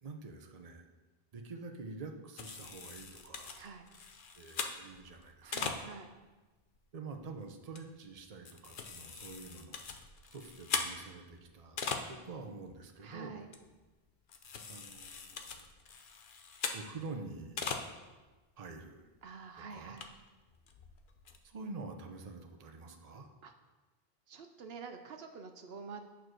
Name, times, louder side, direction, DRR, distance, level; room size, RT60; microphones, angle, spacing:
voice 1, 0.0-0.9 1.3-3.6 4.3-5.8 6.9-9.8 10.3-11.8 12.1-13.4 14.7-15.7 16.7-17.7 18.6-19.0 19.6-20.0 21.4-23.3, right 3 dB, 40° right, 4 dB, 0.8 m, -47 dB
sound 1, 2.4-6.2 6.8-6.9 7.2-7.3 7.7-7.8 8.2-12.4 12.7-12.8 13.1-13.2 13.5-13.9 14.3-17.1 17.3-17.9 18.3-18.4 18.8-18.9 19.2-19.3 19.8-21.4, left 5 dB, 60° left, 0.9 m, -41 dB
voice 2, 3.5-3.9 5.4-6.1 13.0-13.5 19.2-20.1 23.4-23.5 24.3-26.1, right 5 dB, 75° right, 6 dB, 0.9 m, -47 dB
8.9 x 4.6 x 6.2 m, 1.2 s
omnidirectional pair, 1.0 m